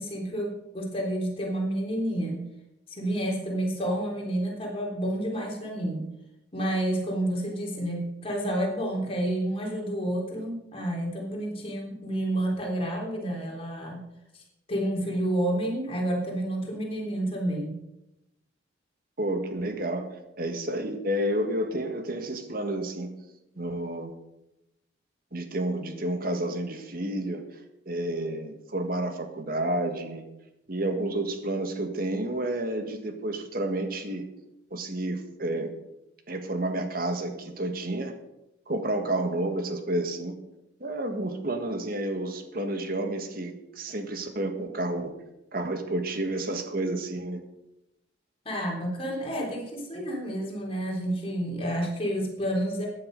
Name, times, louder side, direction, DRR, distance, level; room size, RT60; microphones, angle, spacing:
voice 1, 0.0-2.4 2.9-6.1 6.5-14.0 14.3-14.4 14.7-17.8 48.4-52.9, right 1 dB, 30° left, -1 dB, 3.5 m, -30 dB
voice 2, 19.2-23.1 23.5-24.1 25.3-27.4 27.8-30.3 30.7-34.3 34.7-35.7 36.3-38.1 38.7-40.3 40.8-45.1 45.5-47.4, right 1 dB, 50° right, 6 dB, 1.7 m, -30 dB
15.0 x 9.8 x 5.3 m, 0.90 s
head